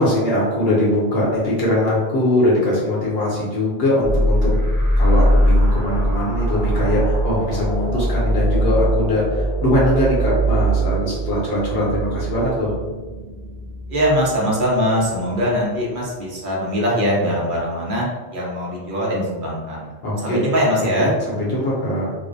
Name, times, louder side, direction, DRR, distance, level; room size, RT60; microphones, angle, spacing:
voice 1, 0.0-4.7 5.0-12.7 20.0-20.4 20.9-22.1, left 1 dB, 65° left, -5 dB, 0.9 m, -21 dB
sound 1, 4.0-15.4, right 1 dB, 35° left, 0.6 m, -21 dB
voice 2, 13.9-18.1 18.3-19.9 20.2-21.1, equal, 55° right, -4 dB, 0.7 m, -21 dB
2.4 x 2.0 x 2.5 m, 1.4 s
omnidirectional pair, 1.1 m